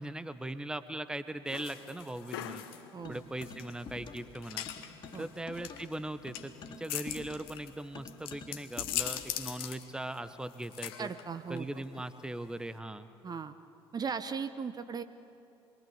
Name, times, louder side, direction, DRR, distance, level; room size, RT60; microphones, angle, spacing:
voice 1, 0.0-2.6 3.1-4.7 5.2-6.5 6.8-11.1 11.5-13.1, right 1 dB, 5° right, 12 dB, 1.1 m, -39 dB
sound 1, 1.5-12.8, left 12 dB, 70° left, 1.4 m, -42 dB
sound 2, 3.0-4.4 4.6-9.4, left 4 dB, 40° left, 2.8 m, -48 dB
voice 2, 11.0-11.7 13.2-13.5 13.9-15.0, right 6 dB, 30° right, 11 dB, 1.1 m, -37 dB
26.0 x 23.0 x 8.1 m, 2.8 s
figure-of-eight pair, 55°, 13 cm